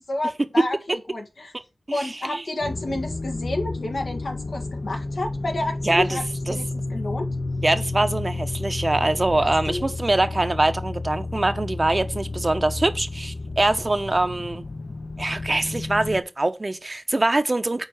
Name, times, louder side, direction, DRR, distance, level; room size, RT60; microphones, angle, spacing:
voice 1, 0.1-1.5 1.9-6.6 6.9-7.3 9.4-9.9, left 2 dB, 85° left, 1.5 m, -30 dB
voice 2, 1.9-2.4 5.8-6.2 6.5-6.6 7.6-14.6 15.2-17.8, right 2 dB, 45° right, 0.9 m, -23 dB
sound 1, 2.6-16.2, left 2 dB, 65° left, 0.7 m, -31 dB
6.5 x 4.5 x 4.6 m
cardioid pair, 40°, 0 cm